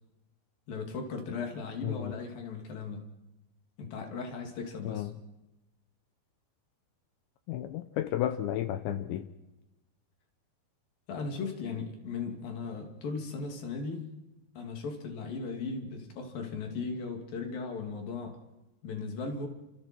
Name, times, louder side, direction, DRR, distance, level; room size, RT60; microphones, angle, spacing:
voice 1, 0.7-3.1 3.8-5.1 11.1-14.1 14.6-18.4 18.8-19.5, left 4 dB, 50° left, 4 dB, 4.0 m, -37 dB
voice 2, 7.5-9.3, left 12 dB, 75° left, 10 dB, 2.8 m, -32 dB
29.5 x 27.0 x 4.6 m, 1.0 s
omnidirectional pair, 5.9 m